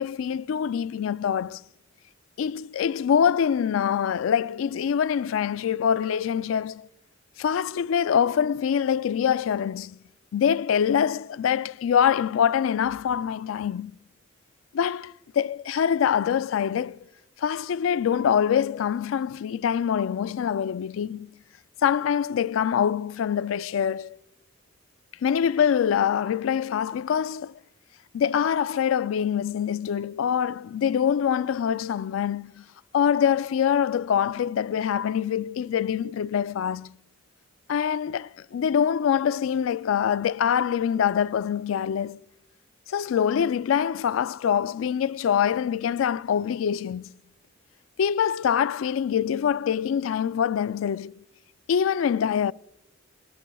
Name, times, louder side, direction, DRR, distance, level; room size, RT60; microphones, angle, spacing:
voice 1, 0.0-1.6 2.4-6.9 7.4-10.0 10.3-13.9 14.7-17.0 17.4-21.3 21.8-24.2 25.2-27.5 28.1-32.6 32.9-36.9 37.7-42.2 42.9-47.1 48.0-51.2 51.7-52.5, left 8 dB, 90° left, 0.3 m, -24 dB
20.5 x 12.5 x 2.3 m
head